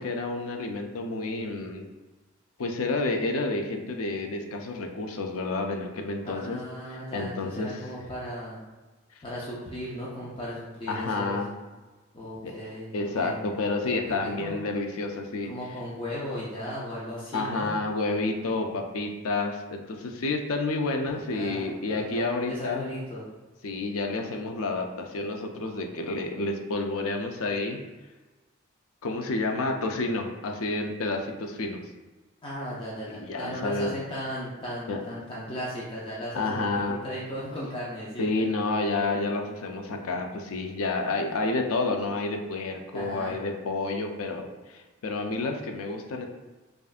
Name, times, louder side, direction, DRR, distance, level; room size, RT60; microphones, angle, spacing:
voice 1, 0.0-1.9 2.6-6.6 6.9-7.8 10.9-11.5 12.4-15.5 17.3-22.9 23.6-27.8 29.0-31.8 33.1-33.9 34.9-35.0 36.3-37.1 38.2-46.3, left 3 dB, 85° left, 4 dB, 0.5 m, -30 dB
voice 2, 6.2-8.6 9.2-11.4 12.1-13.8 14.1-14.6 15.4-17.7 21.1-23.3 32.4-38.4 41.0-41.1 42.9-43.5, equal, 25° left, -7 dB, 0.6 m, -37 dB
5.1 x 2.5 x 2.4 m, 1.2 s
head